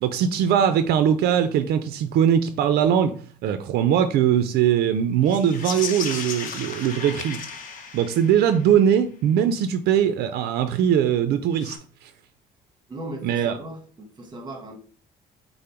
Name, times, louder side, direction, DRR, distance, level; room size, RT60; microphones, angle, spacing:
voice 1, 0.0-3.2 3.4-7.4 7.9-11.8 12.0-12.1 13.2-13.6, right 9 dB, 70° right, 0.4 m, -21 dB
sound 1, 5.2-8.7 11.5-11.8, left 5 dB, 50° left, 0.8 m, -35 dB
voice 2, 12.9-14.8, right 1 dB, 25° right, 1.2 m, -37 dB
5.1 x 2.0 x 4.3 m
cardioid pair, 110°, 17 cm